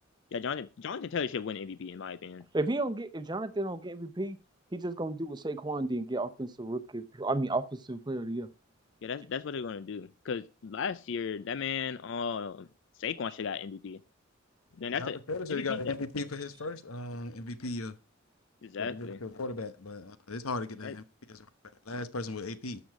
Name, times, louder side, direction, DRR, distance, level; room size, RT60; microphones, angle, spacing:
voice 1, 0.3-2.4 9.0-12.7 13.0-14.0 14.8-15.2 15.5-15.9 18.6-19.2 20.8-20.9, left 6 dB, 60° left, 0.4 m, -35 dB
voice 2, 2.5-4.4 4.7-8.5, right 2 dB, 20° right, 0.8 m, -33 dB
voice 3, 15.0-18.0 18.8-21.5 21.8-22.8, left 3 dB, 90° left, 1.1 m, -37 dB
12.5 x 7.0 x 4.8 m
head